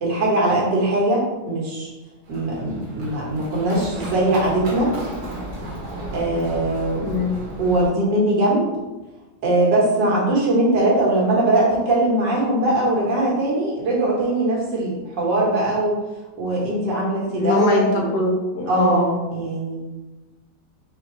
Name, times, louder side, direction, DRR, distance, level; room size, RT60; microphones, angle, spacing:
voice 1, 0.0-1.9 2.3-4.9 6.1-7.2 7.6-8.7 9.4-16.0 16.4-18.1 18.7-19.8, right 1 dB, 80° right, -4 dB, 1.9 m, -21 dB
Run, 2.2-7.9, right 1 dB, 65° right, 1.4 m, -34 dB
voice 2, 7.0-7.4 17.3-19.1, left 3 dB, 65° left, -1 dB, 1.4 m, -22 dB
5.0 x 3.5 x 2.9 m, 1.1 s
omnidirectional pair, 1.9 m